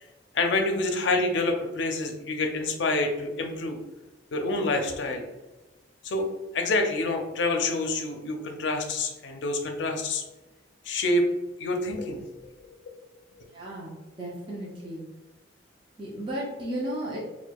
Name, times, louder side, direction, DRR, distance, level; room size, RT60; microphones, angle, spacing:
voice 1, 0.3-3.8 4.3-5.2 6.0-10.2 10.8-11.3 11.6-12.5 13.4-13.5, left 2 dB, 70° left, 4 dB, 0.5 m, -27 dB
voice 2, 13.5-15.0 16.0-17.2, right 1 dB, 25° right, -5 dB, 0.6 m, -35 dB
4.3 x 2.2 x 2.3 m, 1.1 s
head